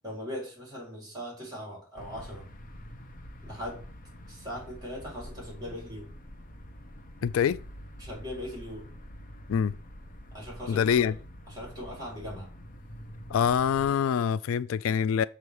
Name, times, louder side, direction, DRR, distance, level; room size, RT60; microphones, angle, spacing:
voice 1, 0.0-2.4 3.4-3.8 4.3-6.1 8.0-8.9 10.3-11.1 11.5-12.5, equal, 20° right, 4.6 m, -39 dB
sound 1, 2.0-13.9, equal, 40° left, 0.9 m, -46 dB
voice 2, 7.2-7.6 9.5-9.7 10.7-11.2 13.3-15.2, left 7 dB, 75° left, 0.3 m, -25 dB
6.9 x 3.9 x 6.4 m
head